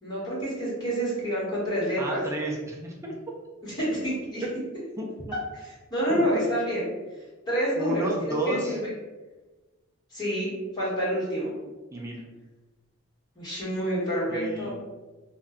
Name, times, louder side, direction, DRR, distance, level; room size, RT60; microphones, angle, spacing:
voice 1, 0.0-2.2 3.6-4.4 5.9-6.8 7.5-8.8 10.1-11.5 13.3-14.7, equal, 20° left, -10 dB, 1.4 m, -28 dB
voice 2, 2.0-3.1 4.4-4.5 5.0-5.1 6.1-6.2 7.7-8.8 11.9-12.2 14.3-14.7, right 1 dB, 15° right, -3 dB, 0.4 m, -31 dB
2.5 x 2.2 x 3.6 m, 1.2 s
head